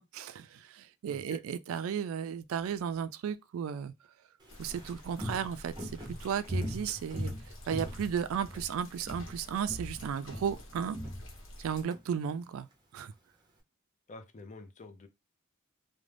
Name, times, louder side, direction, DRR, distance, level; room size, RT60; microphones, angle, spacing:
voice 1, 0.1-3.9 4.6-7.3 7.7-11.0 11.6-12.7 12.9-13.1, right 7 dB, 75° right, 0.3 m, -34 dB
voice 2, 1.1-1.4 14.1-15.1, left 3 dB, 35° left, 0.5 m, -48 dB
Walk footsteps, 4.4-8.7 9.0-9.4 9.7-12.0 12.3-12.4, equal, 20° right, 0.6 m, -39 dB
sound 1, 4.5-11.8, left 1 dB, 65° left, 0.9 m, -49 dB
2.5 x 2.1 x 3.2 m
head